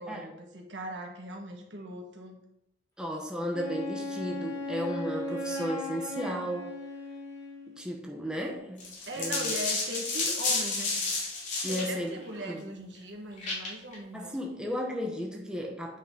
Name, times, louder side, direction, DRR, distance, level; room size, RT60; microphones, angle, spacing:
voice 1, 0.0-2.4 9.1-11.0 11.7-14.4, equal, 85° right, 2 dB, 1.6 m, -39 dB
voice 2, 3.0-6.7 7.7-9.5 11.6-12.2 12.4-12.6 14.1-16.0, equal, 5° right, 0 dB, 0.9 m, -34 dB
Wind instrument woodwind instrument, 3.5-7.9, left 1 dB, 20° left, 3.0 m, -37 dB
sound 1, 8.8-11.9 13.4-13.9, left 3 dB, 45° left, 2.6 m, -31 dB
8.4 x 5.8 x 3.9 m, 0.82 s
head